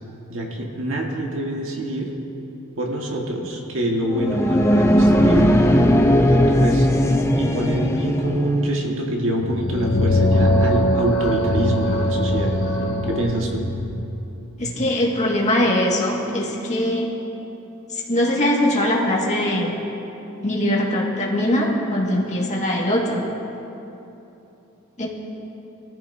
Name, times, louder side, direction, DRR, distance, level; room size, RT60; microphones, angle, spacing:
voice 1, 0.3-2.1 2.8-5.5 6.1-6.9 7.3-12.5 13.1-13.6, right 1 dB, 60° right, -1 dB, 1.8 m, -25 dB
sound 1, 4.1-8.7, equal, 10° left, 0.6 m, -17 dB
sound 2, 9.3-14.0, left 1 dB, 80° left, 2.7 m, -21 dB
voice 2, 14.6-17.1 17.9-19.7 20.4-23.2 25.0-25.1, left 1 dB, 35° left, -3 dB, 2.0 m, -21 dB
24.0 x 14.5 x 2.8 m, 2.9 s
head